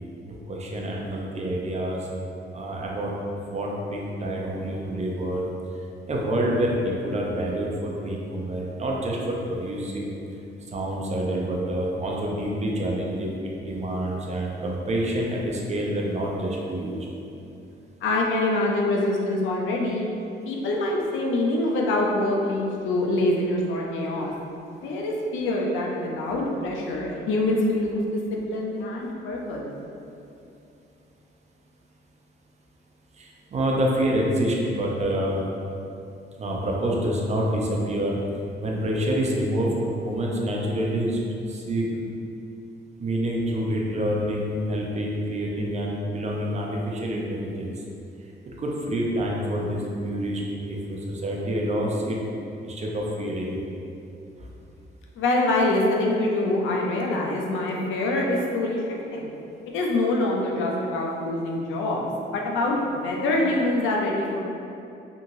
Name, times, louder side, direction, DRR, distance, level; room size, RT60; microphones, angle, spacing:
voice 1, 0.5-2.0 2.5-3.1 3.5-5.4 6.1-10.1 10.7-13.4 13.7-17.0 33.2-35.4 36.4-38.2 38.6-39.7 40.0-41.2 41.5-41.9 43.0-47.7 48.6-52.2 52.6-53.6, right 1 dB, 35° right, -2 dB, 0.5 m, -27 dB
voice 2, 18.0-20.1 20.4-24.3 24.8-29.7 55.2-58.8 59.1-59.3 59.7-62.0 62.3-64.4, left 2 dB, 80° left, -1 dB, 0.5 m, -25 dB
2.9 x 2.7 x 2.6 m, 2.7 s
cardioid pair, 90°, 20 cm